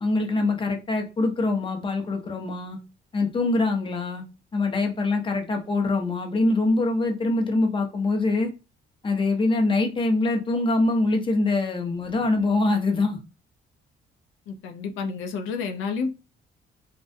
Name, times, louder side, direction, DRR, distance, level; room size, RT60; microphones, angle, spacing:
voice 1, 0.0-2.8 3.1-4.2 4.5-8.5 9.0-13.2, left 2 dB, 25° left, 0.6 m, -24 dB
voice 2, 14.5-16.1, left 5 dB, 90° left, 0.4 m, -30 dB
2.3 x 2.1 x 2.5 m
cardioid pair, 90°, 20 cm